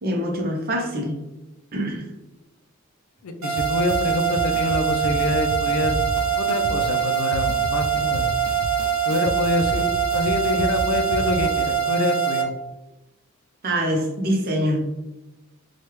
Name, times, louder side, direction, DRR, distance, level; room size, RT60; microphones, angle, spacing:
voice 1, 0.0-1.2 1.7-2.1 13.6-14.8, equal, 45° right, 2 dB, 0.6 m, -24 dB
voice 2, 3.2-5.9 6.4-8.3 9.0-12.5, left 3 dB, 85° left, 6 dB, 0.4 m, -26 dB
sound 1, 3.4-12.4, right 8 dB, 70° right, 0.9 m, -23 dB
sound 2, 3.6-11.8, right 1 dB, 90° right, 0.4 m, -33 dB
3.1 x 2.3 x 3.1 m, 0.99 s
head